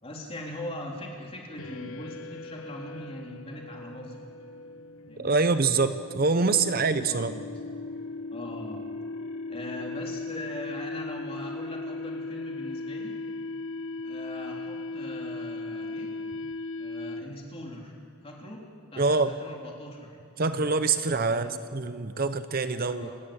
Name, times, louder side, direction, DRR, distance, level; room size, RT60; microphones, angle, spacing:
voice 1, 0.0-4.2 5.1-5.4 7.0-7.5 8.3-8.8 9.5-13.1 14.0-16.1 16.8-17.9 18.2-18.6 18.9-20.2 21.2-21.5 22.7-23.2, left 1 dB, 25° left, -1 dB, 3.6 m, -41 dB
sound 1, 1.6-17.5, left 3 dB, 75° left, 1.0 m, -38 dB
voice 2, 5.2-7.3 19.0-19.3 20.4-23.1, right 4 dB, 45° right, 11 dB, 0.7 m, -25 dB
28.5 x 13.5 x 8.9 m, 2.5 s
head